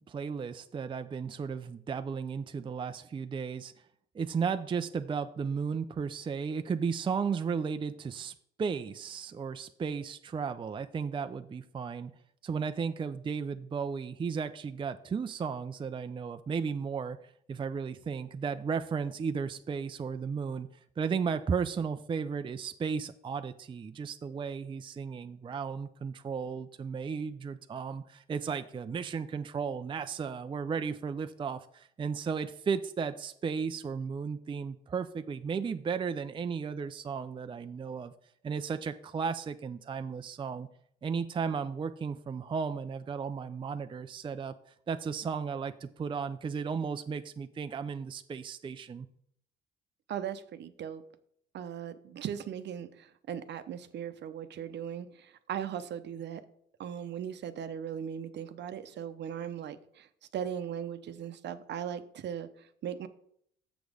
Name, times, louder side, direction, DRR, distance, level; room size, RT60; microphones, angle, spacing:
voice 1, 0.0-3.7 4.1-12.1 12.4-20.7 21.0-38.1 38.4-40.7 41.0-44.5 44.9-49.1, right 6 dB, 25° right, 9 dB, 0.4 m, -34 dB
voice 2, 50.1-51.0 51.5-56.4 56.8-60.1 60.3-63.1, right 9 dB, 60° right, 11 dB, 0.8 m, -38 dB
6.9 x 6.2 x 5.0 m, 0.68 s
supercardioid pair, 75°, 21 cm